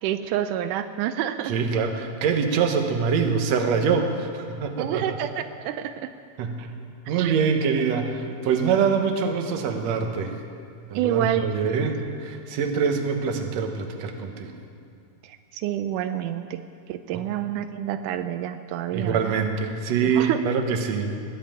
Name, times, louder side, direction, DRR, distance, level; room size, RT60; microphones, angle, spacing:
voice 1, 0.0-1.5 4.8-6.1 7.1-7.4 10.9-11.6 15.2-16.6 16.9-19.3 20.0-20.4, right 11 dB, 85° right, 9 dB, 2.1 m, -28 dB
voice 2, 1.5-5.0 6.4-6.7 7.1-10.4 10.9-14.5 17.1-17.2 18.9-21.1, right 6 dB, 65° right, 5 dB, 2.2 m, -24 dB
21.0 x 7.5 x 9.0 m, 2.3 s
omnidirectional pair, 3.6 m